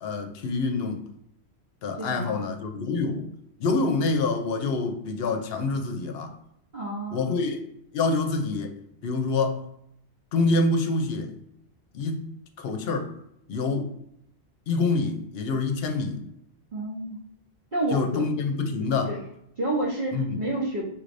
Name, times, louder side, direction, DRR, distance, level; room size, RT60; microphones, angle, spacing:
voice 1, 0.0-1.0 1.8-3.3 3.6-6.3 7.1-7.6 7.9-8.7 9.0-9.6 10.3-11.3 11.9-13.1 13.5-13.9 14.7-16.2 17.9-19.2 20.1-20.4, left 3 dB, 70° left, 0.8 m, -26 dB
voice 2, 2.0-2.4 6.7-7.3 16.7-17.2 17.7-18.2 19.0-19.2 19.6-20.8, right 2 dB, 50° right, 1.0 m, -29 dB
5.9 x 3.2 x 2.6 m
omnidirectional pair, 1.1 m